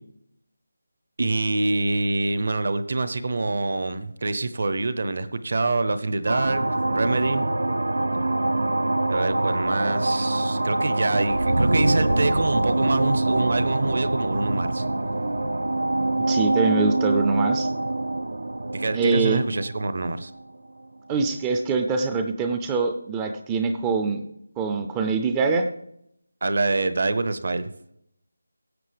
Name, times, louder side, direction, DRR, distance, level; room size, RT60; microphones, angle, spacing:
voice 1, 1.2-7.4 9.1-14.8 18.7-20.3 26.4-27.7, right 3 dB, 50° right, 12 dB, 0.8 m, -26 dB
sound 1, 6.3-20.4, right 2 dB, 80° right, 0.6 m, -24 dB
voice 2, 16.3-17.7 18.9-19.4 21.1-24.3 24.6-25.7, right 4 dB, 10° right, 6 dB, 0.4 m, -24 dB
17.0 x 7.3 x 3.4 m, 0.76 s
figure-of-eight pair, 170°, 0 cm